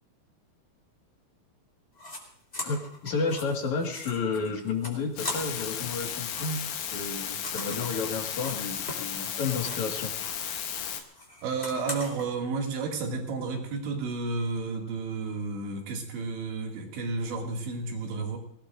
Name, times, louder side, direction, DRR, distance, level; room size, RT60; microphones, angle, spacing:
sound 1, 2.0-2.2 2.5-5.8 6.0-9.9 10.2-12.3, left 1 dB, 15° left, 3.5 m, -41 dB
voice 1, 2.6-10.1, left 4 dB, 50° left, 2 dB, 2.6 m, -31 dB
sound 2, 5.2-11.0, left 9 dB, 70° left, 2.2 m, -34 dB
voice 2, 11.4-18.4, right 4 dB, 80° right, 0 dB, 4.6 m, -32 dB
24.5 x 17.5 x 2.6 m, 0.67 s
omnidirectional pair, 5.1 m